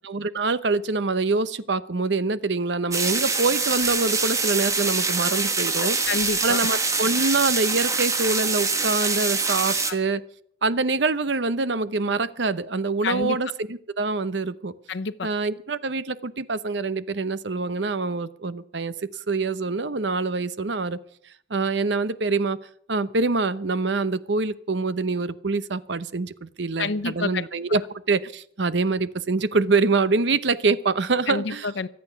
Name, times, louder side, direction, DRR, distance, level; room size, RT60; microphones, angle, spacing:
voice 1, 0.0-6.0 6.4-10.2 10.6-14.7 15.2-18.9 19.3-21.0 21.5-22.6 22.9-27.8 28.1-31.7, right 3 dB, 75° right, 15 dB, 0.8 m, -25 dB
sound 1, 2.9-9.9, right 4 dB, 15° right, 1.3 m, -24 dB
voice 2, 5.8-6.6 9.9-10.0 13.0-13.4 14.9-15.3 26.8-27.4 27.7-27.8 31.3-31.9, left 4 dB, 75° left, 15 dB, 0.7 m, -28 dB
25.0 x 8.8 x 5.8 m, 0.64 s
head